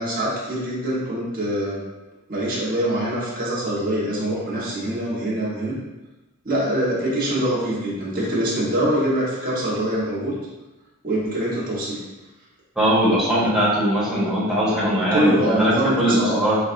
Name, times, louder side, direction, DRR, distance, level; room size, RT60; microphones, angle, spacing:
voice 1, 0.0-1.8 2.3-5.8 6.4-10.3 11.0-12.0 15.1-16.4, right 1 dB, 40° right, -7 dB, 1.4 m, -24 dB
voice 2, 12.7-16.6, equal, ahead, -9 dB, 1.3 m, -20 dB
7.1 x 2.5 x 2.6 m, 1.1 s
head